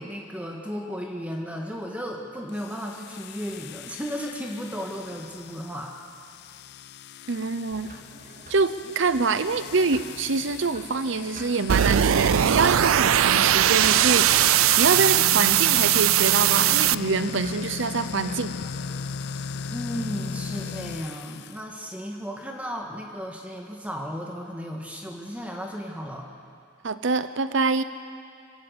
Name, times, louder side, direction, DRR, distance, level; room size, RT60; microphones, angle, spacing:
voice 1, 0.0-6.0 19.7-26.3, equal, 5° right, 0 dB, 1.6 m, -34 dB
sound 1, 2.5-21.6, left 6 dB, 55° left, 0.4 m, -37 dB
voice 2, 7.3-7.9 8.5-14.3 14.8-18.5 26.8-27.8, right 4 dB, 65° right, 12 dB, 0.8 m, -25 dB
sound 2, 7.7-21.2, right 1 dB, 40° right, 2.2 m, -49 dB
sound 3, 11.7-16.9, right 11 dB, 90° right, 0.4 m, -20 dB
25.0 x 15.5 x 8.1 m, 2.3 s
head